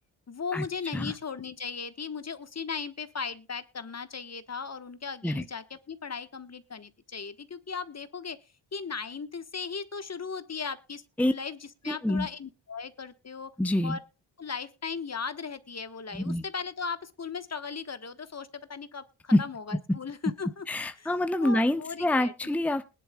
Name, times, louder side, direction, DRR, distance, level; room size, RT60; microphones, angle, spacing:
voice 1, 0.3-8.4 8.7-13.5 13.8-14.0 14.4-20.7 21.0-21.1 21.4-22.3, left 5 dB, 35° left, 12 dB, 1.3 m, -37 dB
voice 2, 11.9-12.3 13.6-14.0 16.1-16.4 19.3-19.4 20.7-22.8, left 1 dB, 5° left, 8 dB, 0.9 m, -26 dB
20.0 x 10.5 x 2.3 m, 0.28 s
supercardioid pair, 60°, 46 cm